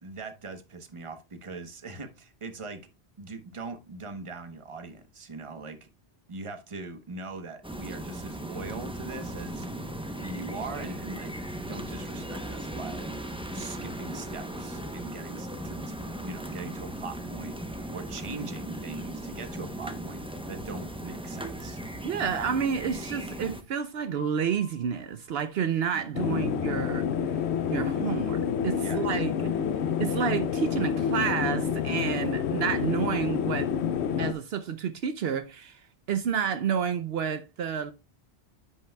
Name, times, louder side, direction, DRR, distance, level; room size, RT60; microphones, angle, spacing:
voice 1, 0.0-2.8 3.2-5.8 6.3-9.7 10.2-13.1 13.5-15.9 16.2-21.8 26.3-26.7 28.7-29.1, right 3 dB, 30° right, 0.9 m, -41 dB
sound 1, 7.6-23.6, right 1 dB, 5° right, 0.6 m, -37 dB
voice 2, 22.0-27.1 27.7-29.3 30.0-33.7 34.2-35.8 36.1-37.9, right 7 dB, 70° right, 0.8 m, -30 dB
Piano, 24.2-26.2, left 9 dB, 90° right, 4.6 m, -54 dB
sound 2, 26.1-34.3, left 8 dB, 85° left, 0.9 m, -28 dB
10.5 x 5.8 x 2.2 m
omnidirectional pair, 1.1 m